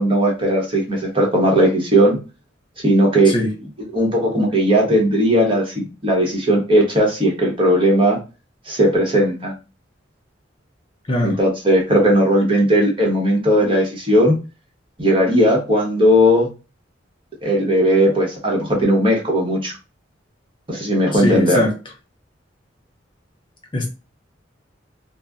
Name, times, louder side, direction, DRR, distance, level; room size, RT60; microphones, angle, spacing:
voice 1, 0.0-2.2 2.8-3.3 3.9-8.2 8.7-9.5 11.2-14.4 15.0-16.5 17.4-19.7 20.7-21.6, equal, 25° right, -1 dB, 0.9 m, -17 dB
voice 2, 21.1-21.7 23.7-23.9, left 1 dB, 25° left, 1 dB, 0.5 m, -20 dB
2.4 x 2.0 x 3.4 m, 0.31 s
head